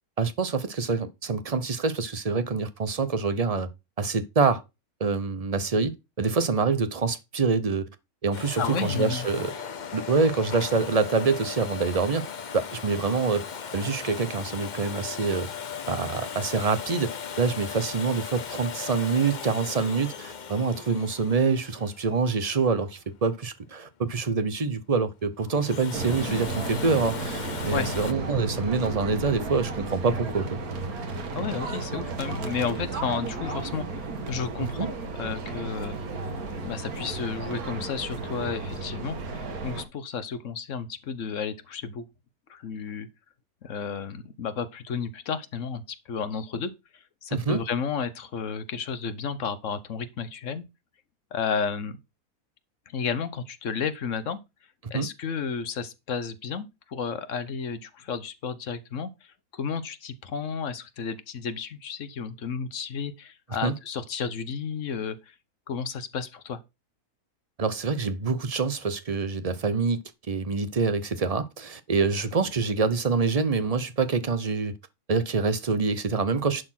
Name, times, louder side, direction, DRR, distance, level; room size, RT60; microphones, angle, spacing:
voice 1, 0.2-3.7 4.0-4.6 5.0-7.9 8.2-9.5 9.9-12.3 12.5-13.4 13.7-15.5 15.9-30.6 34.8-34.9 47.3-47.6 54.9-55.1 63.6-63.7 67.6-70.0 70.3-74.7 75.1-76.6, right 4 dB, 30° right, 0.8 m, -26 dB
Domestic sounds home sounds, 8.3-23.1 25.4-28.1, left 7 dB, 45° left, 0.6 m, -37 dB
voice 2, 8.6-9.3 27.7-27.9 31.3-34.9 35.2-36.0 36.6-42.0 42.5-43.1 43.6-50.7 51.3-52.0 52.9-54.4 54.9-65.3 65.7-66.6, left 6 dB, 60° left, 1.2 m, -32 dB
sound 1, 25.9-39.8, right 3 dB, 80° right, 1.9 m, -33 dB
11.0 x 4.3 x 5.8 m
omnidirectional pair, 1.5 m